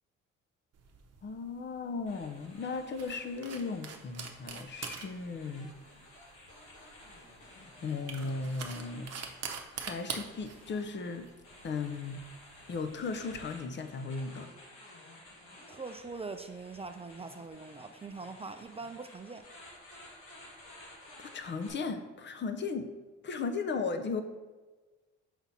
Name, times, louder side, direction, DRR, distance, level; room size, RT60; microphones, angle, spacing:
sound 1, 0.8-13.4, right 6 dB, 55° right, 0.8 m, -45 dB
voice 1, 1.2-5.7 6.8-6.9 7.8-9.1 9.7-11.3 11.6-12.2 12.7-14.5 21.2-22.9 23.2-24.2, left 4 dB, 40° left, 8 dB, 0.6 m, -36 dB
sound 2, 2.1-21.7, left 1 dB, 90° left, 1.7 m, -54 dB
voice 2, 15.7-19.5, right 4 dB, 20° right, 8 dB, 0.3 m, -42 dB
5.9 x 4.1 x 4.1 m, 1.3 s
cardioid pair, 90°, 30 cm